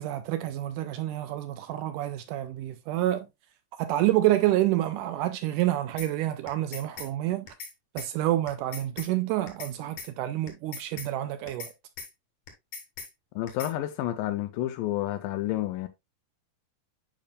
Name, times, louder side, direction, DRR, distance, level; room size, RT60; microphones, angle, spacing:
voice 1, 0.0-3.3 3.8-7.5 7.9-11.7, right 14 dB, 80° right, 1.9 m, -28 dB
sound 1, 6.0-6.1 6.5-7.1 7.5-7.7 8.0-8.1 8.5-9.1 9.5-9.7 10.0-10.1 10.5-11.1 11.5-11.7 12.0-12.1 12.5-13.1 13.5-13.7, left 5 dB, 65° left, 3.1 m, -40 dB
voice 2, 13.4-15.9, left 14 dB, 85° left, 2.3 m, -30 dB
9.0 x 5.2 x 2.3 m
omnidirectional pair, 3.9 m